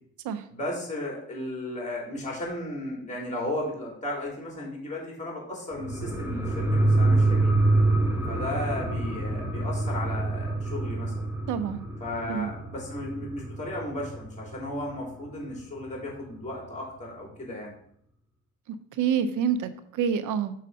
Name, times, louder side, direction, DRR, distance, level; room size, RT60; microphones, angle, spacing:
voice 1, 0.5-7.5 8.3-11.2 12.0-17.7, left 1 dB, 25° left, -2 dB, 3.3 m, -35 dB
sound 1, 5.7-14.8 15.2-15.3, right 2 dB, 5° right, 1.0 m, -26 dB
voice 2, 11.5-11.8 12.3-12.5 18.7-20.5, right 7 dB, 85° right, 12 dB, 0.7 m, -27 dB
6.4 x 3.9 x 5.4 m, 0.66 s
cardioid pair, 90°, 30 cm